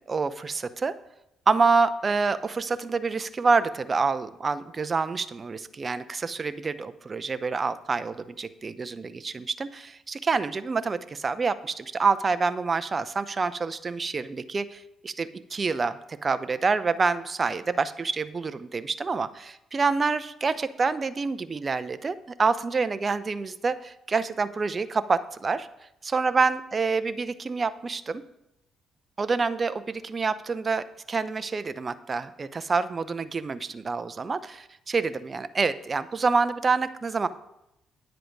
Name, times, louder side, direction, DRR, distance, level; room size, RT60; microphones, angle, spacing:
voice 1, 0.1-0.9 1.5-25.7 26.0-28.2 29.2-37.3, right 4 dB, 35° right, 13 dB, 0.7 m, -27 dB
10.0 x 7.8 x 4.7 m, 0.85 s
supercardioid pair, 75°, 0 cm